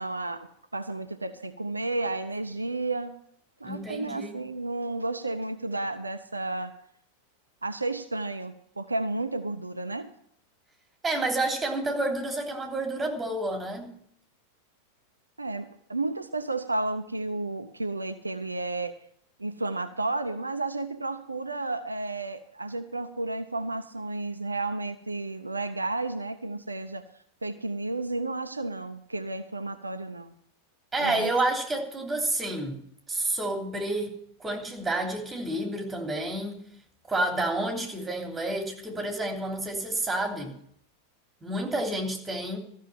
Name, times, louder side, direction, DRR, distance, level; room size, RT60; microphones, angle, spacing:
voice 1, 0.0-3.1 3.6-6.7 7.6-10.1 15.4-19.0 19.4-27.0 27.4-30.3 31.0-31.3, right 2 dB, 80° right, 8 dB, 0.7 m, -32 dB
voice 2, 3.6-4.3 11.0-13.9 30.9-32.8 33.1-36.6 37.1-40.6 41.4-42.6, right 2 dB, 10° right, 2 dB, 3.1 m, -29 dB
14.0 x 6.5 x 9.0 m, 0.66 s
figure-of-eight pair, 90°, 0 cm